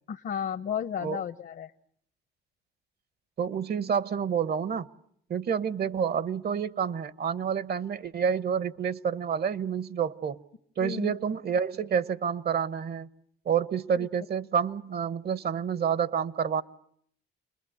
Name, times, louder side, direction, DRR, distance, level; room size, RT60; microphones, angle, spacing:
voice 1, 0.1-1.7 10.8-11.1 14.0-14.1, left 8 dB, 60° left, 1.1 m, -33 dB
voice 2, 3.4-4.9 5.3-10.4 10.8-13.1 13.4-16.6, right 7 dB, 55° right, 1.1 m, -28 dB
29.5 x 21.5 x 7.9 m
cardioid pair, 90°, 20 cm